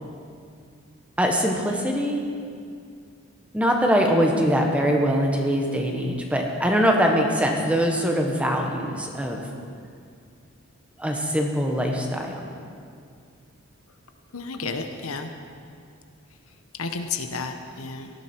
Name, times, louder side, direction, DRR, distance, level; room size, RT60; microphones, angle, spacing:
voice 1, 1.2-2.2 3.5-9.4 11.0-12.5, equal, 5° right, 1 dB, 1.3 m, -22 dB
voice 2, 14.3-15.3 16.8-18.1, left 4 dB, 75° left, 6 dB, 1.0 m, -31 dB
18.0 x 12.5 x 4.6 m, 2.3 s
head